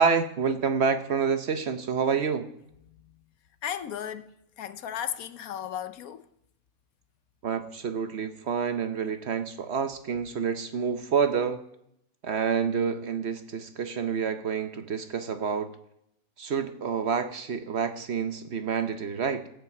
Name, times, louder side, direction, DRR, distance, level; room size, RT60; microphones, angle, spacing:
voice 1, 0.0-2.5 7.4-11.6 12.2-15.7 16.4-19.5, right 6 dB, 50° right, 1.0 m, -28 dB
voice 2, 3.6-4.3 4.6-6.2, left 9 dB, 75° left, 1.2 m, -34 dB
15.5 x 5.9 x 7.9 m
omnidirectional pair, 1.5 m